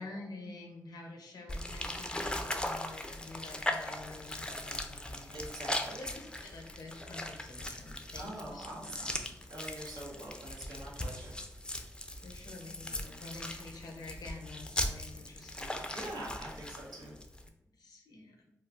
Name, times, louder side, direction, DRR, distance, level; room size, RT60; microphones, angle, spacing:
voice 1, 0.0-9.1 12.2-15.8 17.8-18.4, left 3 dB, 80° left, 2 dB, 0.6 m, -48 dB
sound 1, 1.5-17.5, left 1 dB, 15° left, 0.4 m, -39 dB
voice 2, 5.3-6.0 8.2-11.3 15.9-17.2, right 1 dB, 90° right, -2 dB, 0.7 m, -44 dB
2.3 x 2.3 x 3.4 m, 0.87 s
cardioid pair, 45°, 7 cm